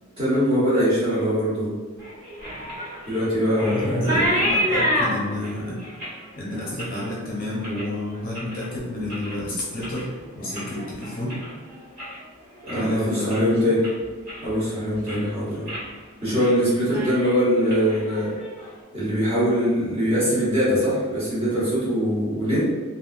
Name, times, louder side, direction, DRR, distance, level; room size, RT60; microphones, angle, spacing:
voice 1, 0.2-1.7 3.1-4.5 12.6-13.8 14.4-15.7 16.2-18.3 18.9-22.7, equal, 25° right, -9 dB, 1.2 m, -22 dB
sound 1, 2.0-8.7 9.0-9.5 9.8-12.2 12.5-13.0 13.3-13.4 13.8-14.6 14.9-15.3 15.7-15.9 16.2-16.6 16.8-18.7, equal, 40° right, 1.4 m, -29 dB
voice 2, 3.6-5.8 6.4-10.1 10.3-11.4 12.7-13.5, left 1 dB, 40° left, -5 dB, 0.7 m, -30 dB
3.4 x 2.6 x 2.5 m, 1.5 s
head